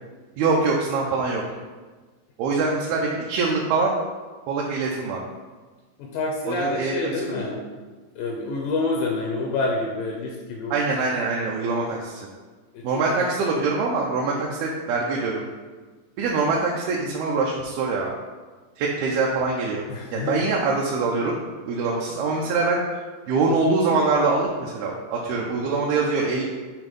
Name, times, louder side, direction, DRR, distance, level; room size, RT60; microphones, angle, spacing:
voice 1, 0.4-1.4 2.4-3.9 4.5-5.2 6.5-7.1 10.7-12.3 12.8-15.5 16.2-18.1 18.8-19.8 20.1-21.3 21.7-22.8 23.3-26.4, right 3 dB, 80° right, -3 dB, 2.4 m, -24 dB
voice 2, 6.0-7.6 8.2-10.8 12.7-13.3 19.9-20.5, left 3 dB, 90° left, -1 dB, 2.0 m, -28 dB
8.1 x 3.5 x 5.2 m, 1.4 s
omnidirectional pair, 4.9 m